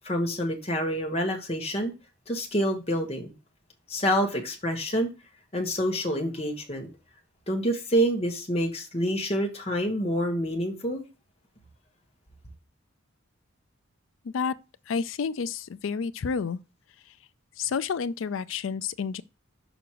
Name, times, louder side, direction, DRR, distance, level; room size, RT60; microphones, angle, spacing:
voice 1, 0.0-1.9 2.3-3.3 3.9-5.1 5.5-6.9 7.5-11.0, equal, 30° left, 1.5 m, -27 dB
voice 2, 14.9-16.6 17.6-19.2, left 6 dB, 75° left, 0.4 m, -29 dB
6.3 x 5.1 x 4.6 m
head